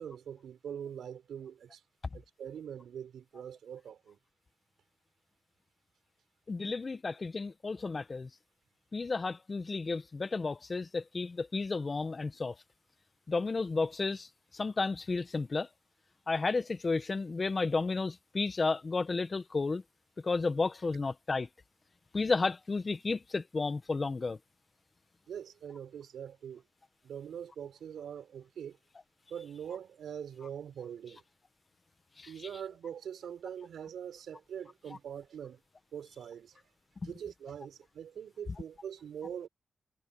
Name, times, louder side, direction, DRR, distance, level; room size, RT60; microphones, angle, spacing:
voice 1, 0.0-1.8 2.1-4.2 25.3-26.6 27.0-28.8 29.3-31.2 32.3-35.6 35.9-36.6 37.0-39.5, right 8 dB, 85° right, 5.4 m, -43 dB
voice 2, 6.5-8.3 8.9-12.5 13.3-14.3 14.5-15.7 16.3-19.8 20.2-21.5 22.1-24.4 32.2-32.3 37.0-37.1, left 3 dB, 45° left, 1.7 m, -32 dB
supercardioid pair, 45°, 0 cm